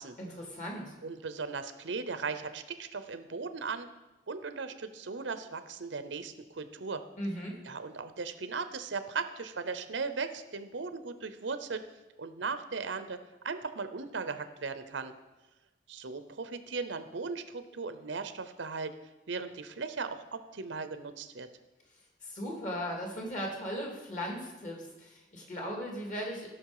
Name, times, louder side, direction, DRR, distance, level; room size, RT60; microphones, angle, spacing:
voice 1, 0.2-0.9 7.2-7.6 22.2-26.5, equal, 45° left, 0 dB, 2.4 m, -37 dB
voice 2, 1.0-3.9 4.3-7.0 7.6-11.8 12.2-13.2 13.4-15.1 15.9-18.9 19.3-21.5, right 4 dB, 80° right, 10 dB, 0.8 m, -37 dB
15.5 x 6.1 x 4.9 m, 1.1 s
head